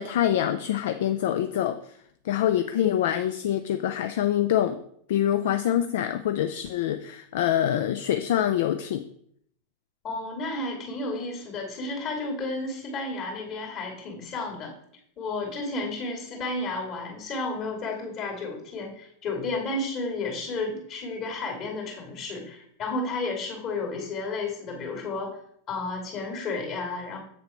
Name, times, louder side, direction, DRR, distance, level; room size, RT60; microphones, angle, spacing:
voice 1, 0.0-1.8 2.2-4.8 5.1-9.0, left 11 dB, 55° left, 9 dB, 0.5 m, -25 dB
voice 2, 10.0-14.7 15.2-25.4 25.7-27.2, left 3 dB, 35° left, 1 dB, 2.8 m, -32 dB
7.8 x 6.7 x 4.4 m, 0.67 s
figure-of-eight pair, 90°, 0 cm